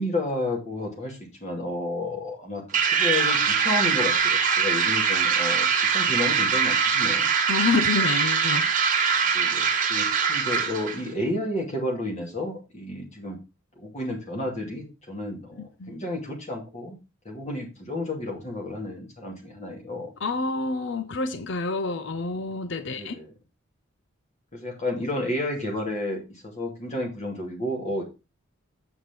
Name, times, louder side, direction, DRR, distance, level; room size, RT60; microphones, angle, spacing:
voice 1, 0.0-2.6 2.9-5.7 5.9-7.3 9.3-13.4 13.8-17.0 17.2-20.1 22.9-23.3 24.5-28.0, left 1 dB, 30° left, 2.4 m, -31 dB
sound 1, 2.7-11.0, right 6 dB, 40° right, 1.1 m, -23 dB
voice 2, 7.5-8.7 15.6-16.0 20.2-23.1, left 3 dB, 55° left, 0.6 m, -28 dB
7.8 x 4.8 x 5.1 m
head